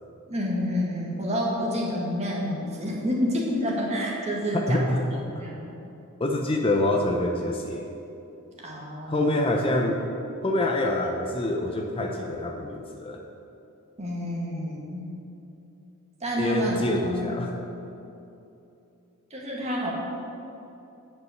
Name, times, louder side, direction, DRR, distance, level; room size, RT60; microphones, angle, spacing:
voice 1, 0.3-5.7 8.6-9.5 14.0-15.1 16.2-17.4 19.3-19.9, equal, 30° right, -3 dB, 1.8 m, -29 dB
voice 2, 4.5-5.0 5.3-5.4 6.2-7.9 9.1-10.0 10.4-13.2 16.4-17.6, left 1 dB, 25° left, 2 dB, 0.6 m, -26 dB
9.4 x 5.3 x 7.9 m, 2.8 s
head